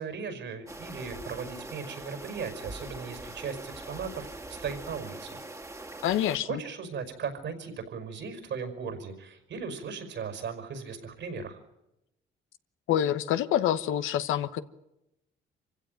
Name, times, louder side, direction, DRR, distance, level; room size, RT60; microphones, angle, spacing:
voice 1, 0.0-5.4 6.4-11.6, right 5 dB, 65° right, 5.4 m, -37 dB
sound 1, 0.7-6.4, right 2 dB, 15° right, 2.1 m, -42 dB
voice 2, 6.0-6.6 12.9-14.6, left 11 dB, 85° left, 1.2 m, -26 dB
26.5 x 16.0 x 9.2 m
cardioid pair, 90°, 20 cm